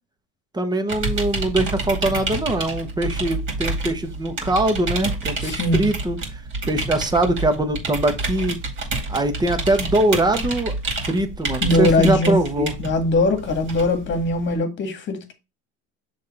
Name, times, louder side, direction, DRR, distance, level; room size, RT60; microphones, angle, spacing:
voice 1, 0.5-6.4 6.7-8.6 9.1-10.7 11.0-12.7, right 1 dB, 15° right, 1.2 m, -22 dB
sound 1, 0.9-14.6, right 3 dB, 40° right, 2.6 m, -29 dB
voice 2, 5.4-5.9 11.6-15.3, left 2 dB, 40° left, 1.7 m, -21 dB
6.6 x 3.4 x 4.3 m
supercardioid pair, 105°, 30 cm